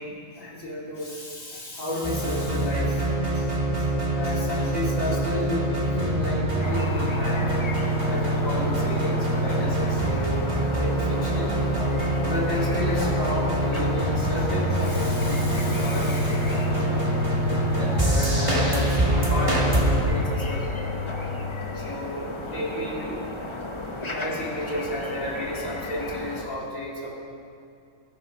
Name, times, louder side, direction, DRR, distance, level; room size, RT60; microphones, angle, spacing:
voice 1, 0.0-3.5 3.8-7.5 7.8-11.6 12.3-17.1 17.7-20.7 21.7-23.3 24.1-27.2, left 1 dB, 70° left, -4 dB, 3.2 m, -32 dB
sound 1, 2.0-20.0, right 1 dB, 20° right, 2.5 m, -25 dB
sound 2, 6.6-26.5, left 1 dB, 25° left, 1.1 m, -34 dB
sound 3, 11.5-21.5, left 7 dB, 75° right, 2.8 m, -34 dB
20.5 x 13.0 x 5.4 m, 2.5 s
omnidirectional pair, 1.4 m